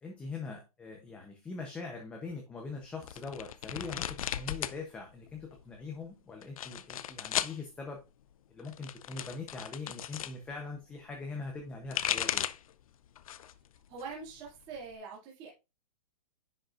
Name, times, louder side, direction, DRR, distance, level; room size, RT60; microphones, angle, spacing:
voice 1, 0.0-8.0 8.5-12.5, left 4 dB, 5° left, 2 dB, 0.7 m, -42 dB
sound 1, 3.0-4.8 5.1-5.7 6.4-7.6 8.6-10.3 11.6-12.7 13.2-13.6 14.0-15.0, left 10 dB, 60° left, 0.5 m, -36 dB
voice 2, 13.9-15.5, right 5 dB, 20° right, -4 dB, 2.4 m, -44 dB
10.0 x 5.4 x 2.4 m, 0.27 s
hypercardioid pair, 170°, 20 cm